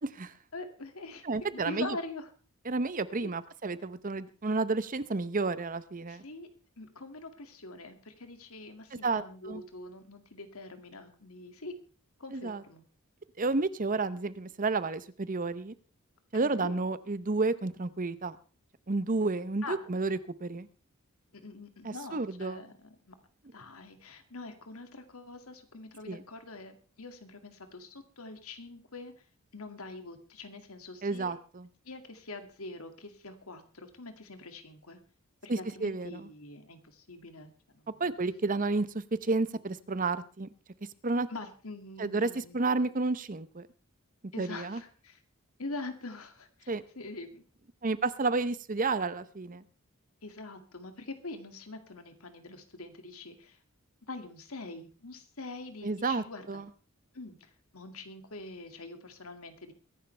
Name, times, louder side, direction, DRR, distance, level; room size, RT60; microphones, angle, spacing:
voice 1, 0.0-0.3 1.2-2.0 2.7-6.2 8.9-9.6 12.3-12.6 13.4-15.7 16.3-18.4 18.9-20.7 21.8-22.6 26.1-26.2 31.0-31.7 35.5-36.3 38.0-40.5 41.0-41.3 42.0-43.7 44.4-44.8 46.7-46.8 47.8-49.6 55.8-56.7, right 3 dB, 40° right, 15 dB, 0.8 m, -31 dB
voice 2, 0.5-1.2 1.5-2.3 3.2-3.3 6.1-6.5 6.8-11.8 12.2-12.8 16.4-16.7 19.6-19.8 21.3-23.1 23.5-29.1 29.5-31.3 31.8-35.0 35.4-38.1 41.3-42.6 44.3-45.2 45.6-47.4 50.2-53.6 54.1-56.6 57.1-59.7, left 2 dB, 75° left, 7 dB, 2.2 m, -44 dB
23.0 x 11.0 x 3.3 m, 0.36 s
head